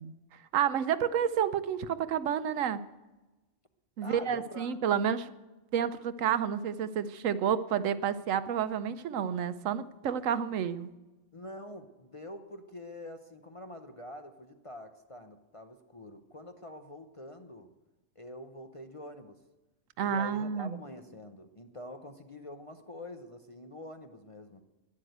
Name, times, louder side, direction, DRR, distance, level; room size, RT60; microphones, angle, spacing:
voice 1, 0.0-2.8 4.0-5.3 5.7-10.9 20.0-20.8, right 8 dB, 75° right, 13 dB, 1.0 m, -30 dB
voice 2, 4.0-4.8 11.3-17.7 18.2-19.4 20.0-24.6, left 1 dB, 30° left, 5 dB, 0.7 m, -46 dB
12.0 x 11.0 x 8.0 m, 1.1 s
omnidirectional pair, 1.4 m